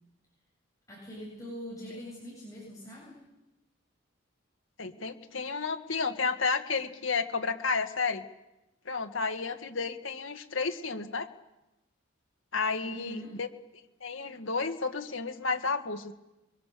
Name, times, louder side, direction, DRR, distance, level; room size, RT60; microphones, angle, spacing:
voice 1, 0.9-3.2 12.8-13.4, equal, 15° left, -4 dB, 7.8 m, -43 dB
voice 2, 4.8-8.2 8.9-11.3 12.5-13.5 14.0-16.1, left 4 dB, 70° left, 5 dB, 1.9 m, -31 dB
28.0 x 23.0 x 6.8 m, 0.95 s
head